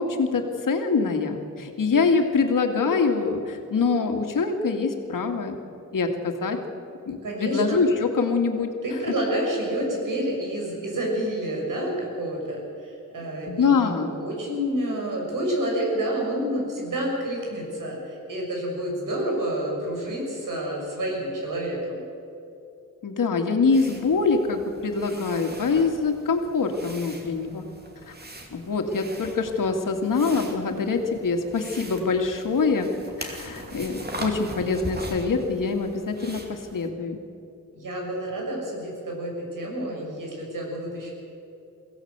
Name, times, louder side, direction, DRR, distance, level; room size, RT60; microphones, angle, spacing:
voice 1, 0.0-5.6 5.9-6.6 7.1-8.7 13.5-14.1 23.0-27.6 28.1-28.2 28.5-32.9 33.2-37.2, left 4 dB, 70° left, 4 dB, 2.3 m, -24 dB
voice 2, 7.2-7.7 8.8-22.0 37.7-41.1, right 1 dB, 70° right, -1 dB, 6.5 m, -29 dB
sound 1, 23.7-36.9, right 1 dB, 30° right, 2.5 m, -41 dB
22.5 x 16.0 x 8.2 m, 2.8 s
wide cardioid pair, 140°, 33 cm